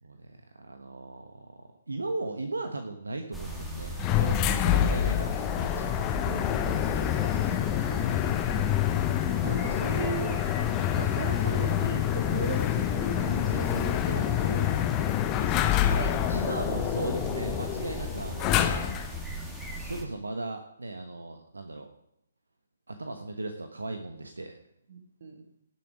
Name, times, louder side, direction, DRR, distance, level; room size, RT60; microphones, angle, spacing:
voice 1, 0.0-5.8 16.3-18.9 19.7-21.9 22.9-24.6, right 2 dB, 70° right, 6 dB, 1.2 m, -37 dB
sound 1, 3.3-20.0, right 1 dB, 5° right, 2.0 m, -38 dB
sound 2, 4.0-19.2, left 11 dB, 20° left, 0.9 m, -27 dB
voice 2, 6.2-8.2 9.4-10.4 10.9-16.4 24.9-25.4, right 5 dB, 50° right, 5 dB, 2.2 m, -38 dB
18.0 x 7.5 x 5.1 m, 0.76 s
figure-of-eight pair, 135°, 0 cm